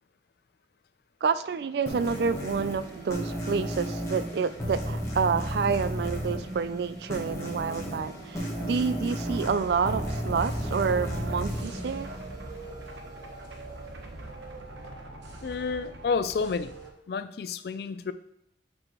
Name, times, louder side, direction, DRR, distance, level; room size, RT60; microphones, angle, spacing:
voice 1, 1.2-12.1, right 5 dB, 60° right, 13 dB, 0.3 m, -28 dB
sound 1, 1.9-13.0, equal, 15° left, 1.3 m, -34 dB
sound 2, 9.3-16.9, right 2 dB, 85° right, 0.9 m, -41 dB
voice 2, 15.4-16.7 17.1-18.1, left 5 dB, 55° left, 13 dB, 0.3 m, -30 dB
7.5 x 4.6 x 3.0 m, 0.80 s
head